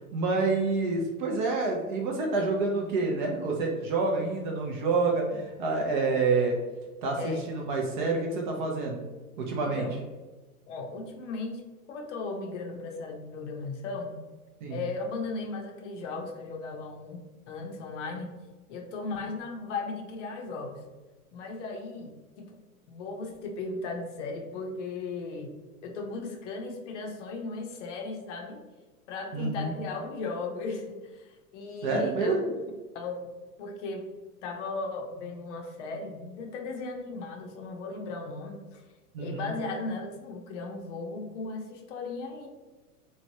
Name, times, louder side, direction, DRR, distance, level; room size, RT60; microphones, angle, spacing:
voice 1, 0.1-6.6 7.0-9.0 9.4-9.9 14.6-14.8 29.3-29.7 31.8-32.5 39.1-39.5, right 3 dB, 35° right, 0 dB, 0.4 m, -28 dB
voice 2, 7.2-7.5 9.6-10.0 10.7-11.6 11.9-14.2 14.7-17.2 17.5-18.3 18.7-20.8 21.3-22.1 22.4-22.6 22.9-25.5 25.8-28.6 29.1-32.4 32.9-33.3 33.6-34.1 34.4-38.8 39.2-42.5, left 3 dB, 55° left, 3 dB, 0.6 m, -36 dB
3.1 x 2.1 x 2.6 m, 1.2 s
hypercardioid pair, 110°, 45 cm